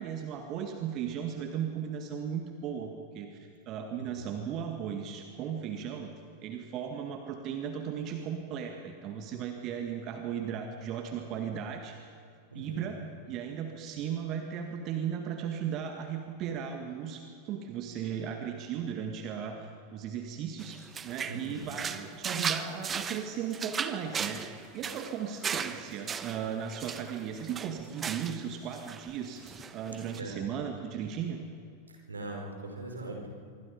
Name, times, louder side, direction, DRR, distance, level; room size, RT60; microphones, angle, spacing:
voice 1, 0.0-6.1 6.4-12.1 12.6-13.0 13.3-20.8 21.0-29.4 29.7-31.4, right 8 dB, 35° right, 4 dB, 1.9 m, -36 dB
voice 2, 4.0-4.3 12.5-12.9 21.3-21.6 30.1-30.4 31.9-33.3, right 2 dB, 75° right, 1 dB, 4.8 m, -41 dB
sound 1, 20.6-28.5 28.7-29.1 29.4-30.2, right 6 dB, 20° right, 1.2 m, -37 dB
26.0 x 24.0 x 5.2 m, 2.5 s
figure-of-eight pair, 90°, 0 cm